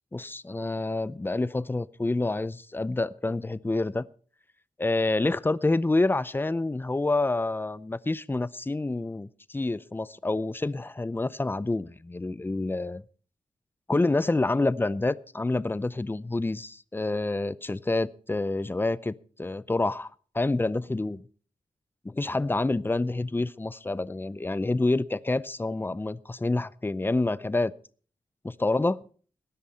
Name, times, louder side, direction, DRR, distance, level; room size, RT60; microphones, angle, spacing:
voice 1, 0.1-4.1 4.8-13.0 13.9-20.1 20.3-21.2 22.0-27.7 28.4-29.0, left 2 dB, 15° left, 18 dB, 0.6 m, -28 dB
19.0 x 10.5 x 4.3 m, 0.42 s
wide cardioid pair, 100°, 14 cm